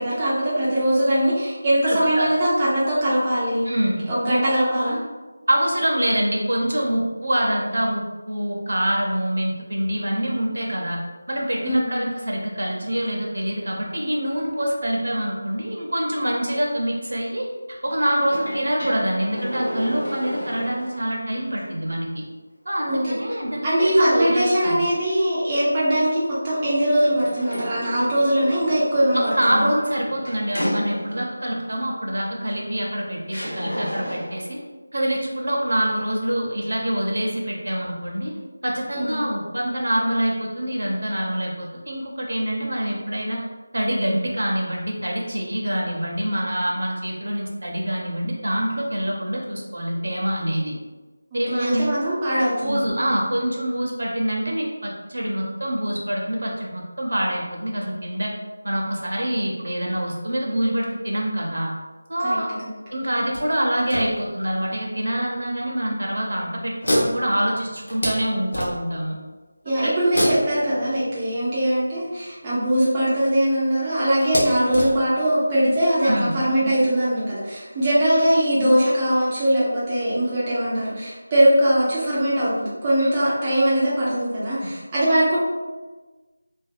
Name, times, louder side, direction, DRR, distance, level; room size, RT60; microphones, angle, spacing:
voice 1, 0.0-3.7 4.1-5.0 11.6-12.1 22.9-23.1 23.6-29.7 38.9-39.2 51.5-52.8 62.2-62.4 62.6-62.7 69.6-85.4, right 1 dB, 15° right, -9 dB, 0.3 m, -21 dB
voice 2, 1.8-2.3 3.6-4.0 5.5-11.0 11.3-22.2 22.7-24.8 29.1-34.6 34.9-38.3 38.6-43.4 43.7-50.7 51.3-51.9 52.6-58.3 58.6-61.7 62.1-62.5 62.9-69.2 69.8-69.9 76.0-76.3 83.0-83.1, right 1 dB, 75° right, -1 dB, 0.7 m, -25 dB
sound 1, 18.2-21.1 21.6-21.7 27.0-31.4 32.5-32.6 33.3-34.5, equal, 70° left, 1.0 m, -32 dB
sound 2, 63.3-64.7 65.4-65.5 65.9-66.1 66.8-69.1 70.1-71.8 72.9-73.0 73.3-73.4 74.2-75.8, equal, 50° left, 0.6 m, -28 dB
2.5 x 2.2 x 2.4 m, 1.3 s
figure-of-eight pair, 180°, 0 cm